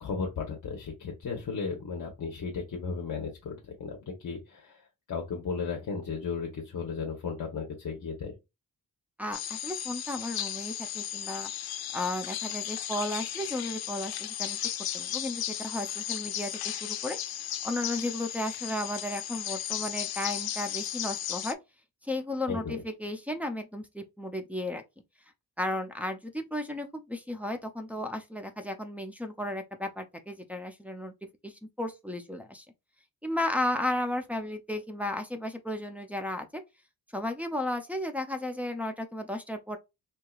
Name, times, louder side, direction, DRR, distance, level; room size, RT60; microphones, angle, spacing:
voice 1, 0.0-4.8 5.1-8.3 22.5-22.8, left 5 dB, 60° left, 0.9 m, -35 dB
voice 2, 9.2-11.5 11.9-14.6 14.9-17.2 17.6-21.6 22.0-24.8 25.6-31.1 31.4-32.7 33.2-36.6 37.1-39.8, left 1 dB, 5° right, 0.4 m, -34 dB
sound 1, 9.3-21.5, left 11 dB, 80° left, 0.5 m, -35 dB
4.5 x 2.9 x 2.3 m
wide cardioid pair, 170°, 36 cm